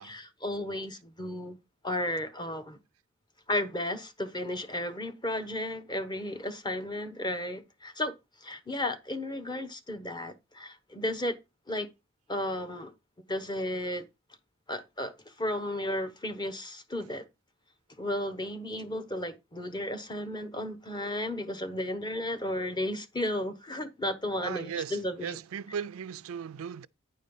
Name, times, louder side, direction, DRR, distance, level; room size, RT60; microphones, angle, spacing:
voice 1, 0.0-1.6 1.8-2.8 3.5-8.1 8.4-11.4 11.7-11.9 12.3-12.9 13.3-14.0 14.7-17.3 18.0-25.4, left 1 dB, 20° left, 1.0 m, -34 dB
voice 2, 24.4-26.9, right 7 dB, 75° right, 0.4 m, -37 dB
9.7 x 4.2 x 5.4 m
head